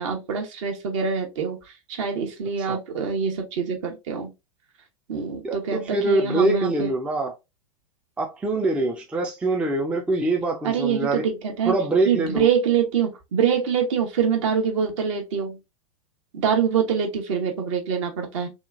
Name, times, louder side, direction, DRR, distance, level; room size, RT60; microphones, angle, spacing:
voice 1, 0.0-4.3 5.1-6.9 10.6-11.7 12.0-15.6 16.3-18.5, right 7 dB, 55° right, 0.9 m, -25 dB
voice 2, 5.4-7.3 8.2-11.2 11.7-12.5, right 2 dB, 5° right, 0.4 m, -24 dB
2.8 x 2.4 x 2.4 m
figure-of-eight pair, 90°, 19 cm